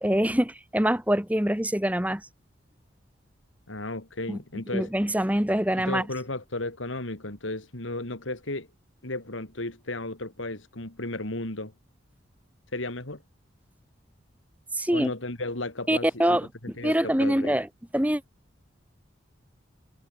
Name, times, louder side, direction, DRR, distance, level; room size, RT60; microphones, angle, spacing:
voice 1, 0.0-2.2 4.3-4.4 4.7-6.0 14.7-15.1 15.9-16.5 16.8-17.7 17.9-18.2, equal, 10° right, 1.5 m, -24 dB
voice 2, 3.7-4.9 5.8-8.7 9.0-11.7 12.7-13.2 14.9-17.5, left 2 dB, 80° left, 3.6 m, -34 dB
head